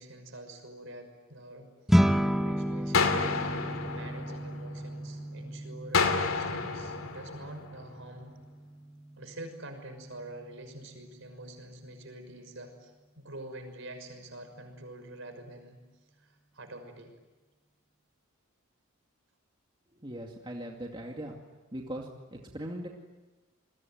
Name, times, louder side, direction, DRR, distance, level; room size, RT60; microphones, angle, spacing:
voice 1, 0.0-1.7 2.0-8.3 9.2-15.8 16.2-17.1, right 1 dB, 65° right, 6 dB, 6.1 m, -46 dB
sound 1, 1.9-11.4, equal, ahead, 1.0 m, -32 dB
sound 2, 2.9-5.0 5.9-8.0, left 4 dB, 80° left, 2.8 m, -30 dB
voice 2, 20.0-21.4 21.7-22.9, right 1 dB, 25° right, 0 dB, 2.4 m, -39 dB
28.5 x 22.0 x 9.4 m, 1.2 s
head